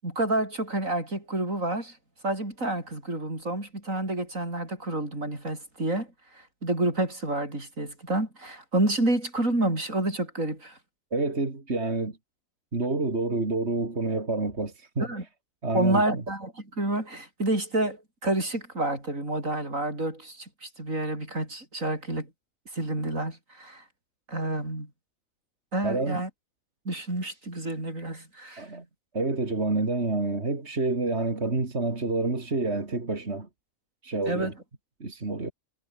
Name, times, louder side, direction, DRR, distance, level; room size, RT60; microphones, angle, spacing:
voice 1, 0.0-2.0 2.2-6.1 6.3-10.8 15.0-15.2 15.7-22.3 22.7-23.8 24.3-24.9 25.7-26.3 26.9-28.7 34.3-34.5, right 2 dB, 90° right, 7.5 m, -29 dB
voice 2, 11.1-12.2 12.7-15.1 15.6-16.2 25.8-26.2 28.6-28.8 29.1-33.5 34.0-34.5 35.0-35.5, right 3 dB, 55° right, 3.4 m, -28 dB
omnidirectional pair, 1.3 m